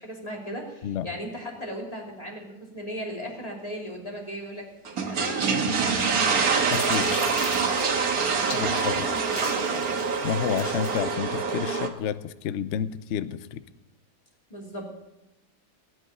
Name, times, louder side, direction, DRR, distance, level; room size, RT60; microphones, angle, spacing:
voice 1, 0.0-4.7 5.0-9.9 14.5-14.9, equal, 20° left, -1 dB, 2.9 m, -37 dB
sound 1, 4.8-11.9, right 5 dB, 65° right, 1.7 m, -25 dB
sound 2, 6.3-11.0, left 5 dB, 80° left, 1.8 m, -41 dB
voice 2, 6.7-7.1 8.5-9.0 10.2-13.6, left 9 dB, 60° left, 14 dB, 0.8 m, -30 dB
18.5 x 6.2 x 9.0 m, 0.99 s
omnidirectional pair, 1.7 m